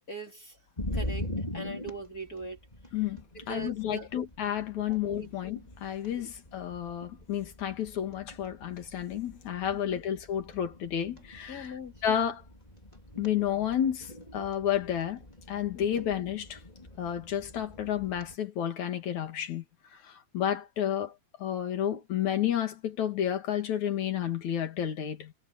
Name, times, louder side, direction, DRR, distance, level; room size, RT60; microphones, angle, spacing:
voice 1, 0.1-0.6 0.9-2.6 3.3-4.1 4.9-5.3 9.7-10.0 11.5-11.9 15.7-16.0, right 1 dB, 30° left, 3.9 m, -41 dB
sound 1, 0.8-18.3, left 1 dB, 10° left, 4.1 m, -43 dB
voice 2, 3.5-11.7 12.0-12.4 13.2-15.2 15.5-16.6 17.0-19.6 20.0-21.1 21.4-25.3, left 10 dB, 70° left, 3.6 m, -31 dB
omnidirectional pair, 3.4 m